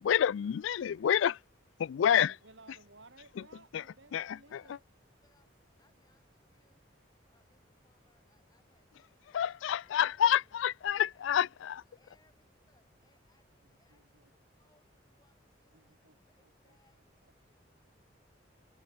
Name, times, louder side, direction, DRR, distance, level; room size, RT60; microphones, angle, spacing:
voice 1, 0.0-1.4 1.8-2.3 3.7-3.8 4.1-4.6 9.3-11.8, left 9 dB, 85° left, 0.3 m, -28 dB
voice 2, 2.1-4.8 5.9-6.0 13.6-14.3 15.7-17.5, right 2 dB, 75° right, 6.2 m, -60 dB
voice 3, 4.1-4.8 5.2-5.5 5.8-6.9 7.3-10.8 11.1-11.4 12.0-17.0, left 2 dB, 20° left, 6.1 m, -73 dB
head